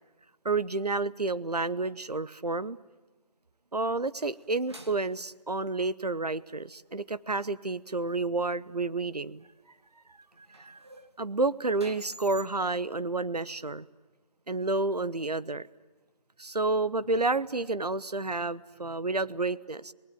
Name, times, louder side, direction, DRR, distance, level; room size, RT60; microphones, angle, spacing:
voice 1, 0.4-2.8 3.7-9.5 10.4-10.8 11.2-13.8 14.5-15.7 16.4-19.9, right 3 dB, 75° right, 16 dB, 1.0 m, -30 dB
sound 1, 4.0-5.4 9.1-9.2 10.3-12.5, right 1 dB, 40° right, 2.2 m, -50 dB
28.0 x 20.0 x 9.4 m, 1.2 s
figure-of-eight pair, 180°, 20 cm